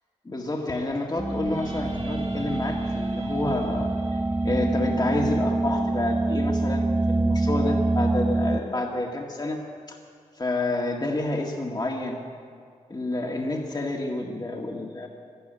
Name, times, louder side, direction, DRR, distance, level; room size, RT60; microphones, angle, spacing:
voice 1, 0.3-4.2 4.4-9.6 9.9-10.0 10.4-12.2 12.9-15.1, left 2 dB, 30° left, 1 dB, 1.9 m, -29 dB
sound 1, 0.8-8.9, right 1 dB, 50° right, 2.0 m, -46 dB
sound 2, 1.2-8.6, right 2 dB, 10° right, 0.3 m, -25 dB
13.0 x 11.5 x 9.1 m, 2.2 s
cardioid pair, 50°, 13 cm